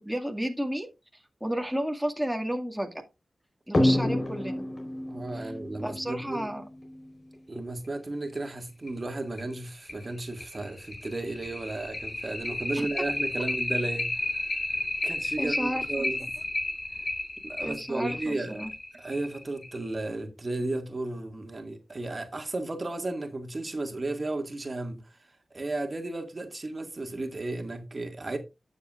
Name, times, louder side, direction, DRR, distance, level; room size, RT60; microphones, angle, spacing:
voice 1, 0.0-2.9 3.7-4.6 5.3-5.5 5.8-6.6 12.7-12.9 15.0-16.1 17.6-18.7, equal, 5° right, 2.1 m, -33 dB
sound 1, 3.7-6.9 8.4-8.5 8.9-9.0 9.4-9.5 9.9-19.9, left 1 dB, 50° left, 4.2 m, -30 dB
voice 2, 5.1-6.5 7.5-14.4 15.0-16.2 17.4-18.7 19.0-25.1 25.5-28.4, right 2 dB, 45° right, 2.0 m, -34 dB
12.0 x 7.4 x 2.5 m
cardioid pair, 45°, 0 cm